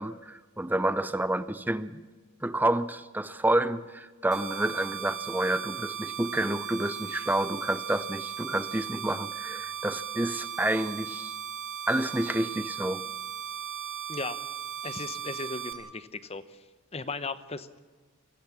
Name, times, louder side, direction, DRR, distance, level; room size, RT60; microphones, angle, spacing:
voice 1, 0.0-2.0 2.4-11.3 11.9-13.0, right 1 dB, 10° right, 14 dB, 0.6 m, -29 dB
sound 1, 4.3-15.7, right 9 dB, 35° right, 3.4 m, -37 dB
voice 2, 14.8-16.6 16.9-17.8, left 3 dB, 30° left, 13 dB, 0.9 m, -37 dB
24.0 x 17.0 x 7.3 m, 1.4 s
head